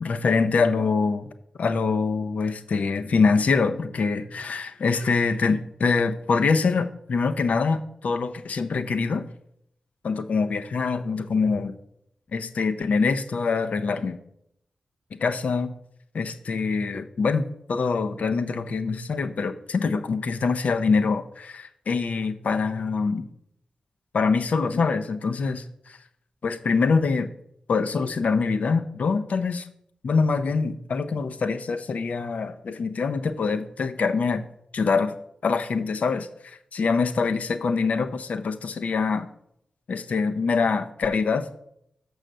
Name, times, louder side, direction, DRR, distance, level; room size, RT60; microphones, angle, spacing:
voice 1, 0.0-1.3 1.6-9.3 10.0-11.8 12.3-14.2 15.2-15.7 16.1-23.3 24.1-26.0 26.4-27.3 27.7-29.7 30.0-34.4 34.7-35.1 35.4-39.3 39.9-41.5, left 4 dB, 70° left, 9 dB, 0.7 m, -24 dB
6.4 x 6.3 x 6.7 m, 0.75 s
cardioid pair, 70°, 3 cm